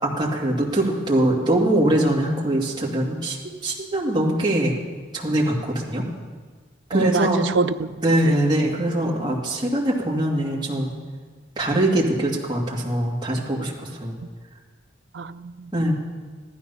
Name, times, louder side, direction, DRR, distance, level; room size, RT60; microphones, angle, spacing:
voice 1, 0.0-3.4 3.6-4.7 5.1-6.0 6.9-7.4 8.0-11.0 11.6-14.2 15.7-15.9, right 1 dB, 20° right, -4 dB, 2.2 m, -22 dB
voice 2, 6.9-7.9 8.2-8.4 15.1-15.7, right 4 dB, 70° right, 11 dB, 0.5 m, -25 dB
15.0 x 12.5 x 5.6 m, 1.5 s
head